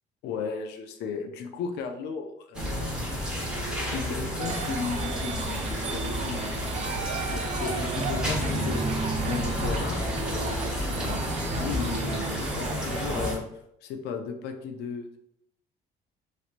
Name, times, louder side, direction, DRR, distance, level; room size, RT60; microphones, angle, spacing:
voice 1, 0.2-3.4 3.9-6.7 7.2-13.4 13.8-15.2, left 5 dB, 80° left, 6 dB, 0.5 m, -35 dB
sound 1, 2.5-13.4, equal, 5° right, 0.9 m, -30 dB
sound 2, 4.4-13.3, right 5 dB, 40° right, 0.4 m, -35 dB
3.0 x 3.0 x 2.5 m, 0.75 s
cardioid pair, 110°, 17 cm